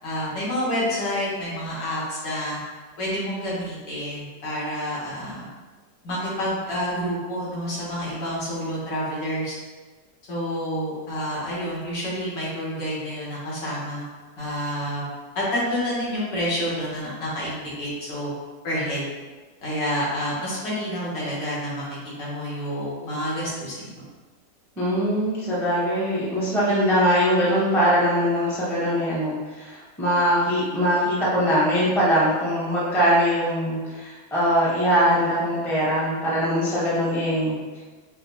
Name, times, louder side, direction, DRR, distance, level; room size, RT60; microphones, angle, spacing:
voice 1, 0.0-2.6 3.0-5.5 6.0-9.6 10.3-14.0 14.4-15.1 15.4-18.3 18.6-19.1 19.6-21.9 22.2-23.9, equal, 85° left, -7 dB, 1.8 m, -28 dB
voice 2, 24.8-37.8, equal, 5° left, -8 dB, 0.3 m, -22 dB
5.0 x 2.0 x 2.8 m, 1.3 s
omnidirectional pair, 1.8 m